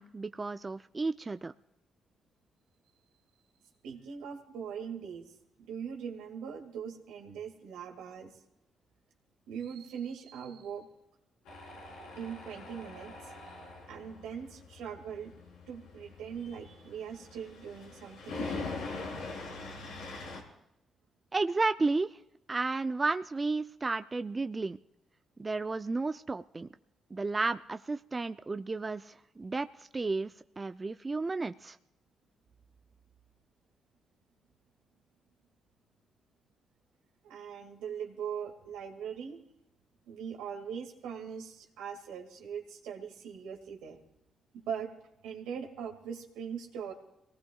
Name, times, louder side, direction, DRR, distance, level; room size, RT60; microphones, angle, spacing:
voice 1, 0.0-1.5 21.3-22.2 22.5-24.8 25.4-26.7 27.1-31.8, right 3 dB, 30° right, 10 dB, 0.5 m, -32 dB
voice 2, 3.8-5.3 5.6-8.4 9.5-10.9 12.2-13.5 13.9-15.3 15.7-18.5 37.2-39.4 40.1-44.0 44.5-44.9 45.2-46.9, right 7 dB, 85° right, 3 dB, 2.2 m, -41 dB
Tools, 11.5-20.4, left 3 dB, 90° left, 4.0 m, -43 dB
26.0 x 19.0 x 2.4 m, 0.86 s
supercardioid pair, 50°, 0 cm